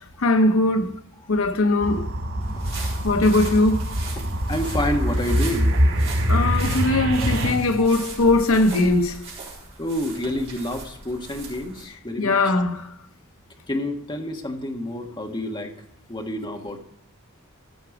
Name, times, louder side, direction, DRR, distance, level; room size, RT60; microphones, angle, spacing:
voice 1, 0.2-0.9 1.3-2.1 3.0-3.9 6.3-9.2 12.2-12.9, left 2 dB, 75° left, 0.8 m, -20 dB
sound 1, 1.8-7.5, equal, 80° right, 4.4 m, -24 dB
sound 2, 2.4-11.8, right 3 dB, 30° right, 4.4 m, -38 dB
voice 2, 4.2-5.7 7.2-7.3 7.8-8.0 9.8-12.6 13.7-15.7 16.1-16.8, left 1 dB, 20° left, 1.5 m, -29 dB
15.0 x 5.9 x 5.9 m
head